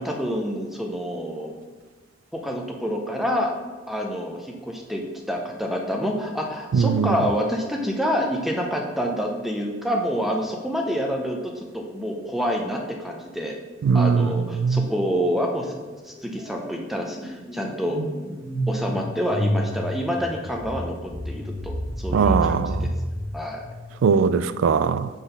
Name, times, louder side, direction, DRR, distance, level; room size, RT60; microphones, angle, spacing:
voice 1, 0.0-1.6 2.3-3.6 3.9-11.4 11.7-13.6 13.9-15.8 16.0-18.0 18.7-22.9 23.3-23.6, equal, ahead, 0.6 m, -27 dB
voice 2, 6.7-7.2 13.8-14.9 22.1-22.8 24.0-25.1, right 6 dB, 85° right, 0.3 m, -20 dB
sound 1, 14.8-15.2 15.4-24.2, equal, 20° left, 1.8 m, -31 dB
6.1 x 3.9 x 5.1 m
head